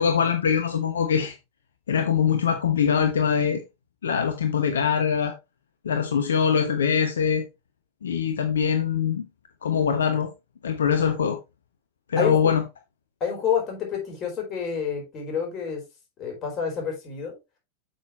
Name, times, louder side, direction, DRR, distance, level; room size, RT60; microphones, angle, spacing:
voice 1, 0.0-1.3 1.9-3.6 4.0-5.3 5.8-7.4 8.0-9.2 9.6-10.3 10.6-11.4 12.1-12.6, left 7 dB, 65° left, 1.0 m, -23 dB
voice 2, 13.2-15.8 16.2-17.4, left 7 dB, 30° left, 4.7 m, -28 dB
8.3 x 6.5 x 3.2 m
figure-of-eight pair, 90°, 0 cm